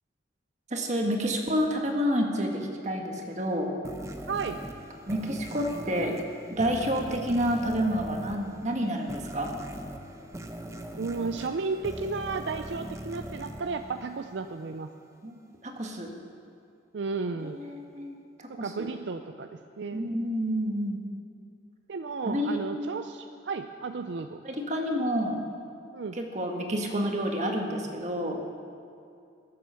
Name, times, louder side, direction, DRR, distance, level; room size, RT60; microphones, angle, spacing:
voice 1, 0.7-3.7 5.1-6.2 6.5-9.5 15.2-15.4 15.6-16.1 17.4-18.1 18.4-18.9 19.9-21.1 22.2-22.6 24.4-25.4 26.1-28.4, equal, 35° right, 2 dB, 1.5 m, -29 dB
sound 1, 3.8-14.6, right 1 dB, 15° right, 0.7 m, -41 dB
voice 2, 4.3-4.6 10.9-14.9 16.9-17.6 18.5-20.1 21.9-24.4 25.9-26.2, right 4 dB, 70° right, 7 dB, 0.5 m, -33 dB
22.0 x 7.6 x 5.7 m, 2.5 s
head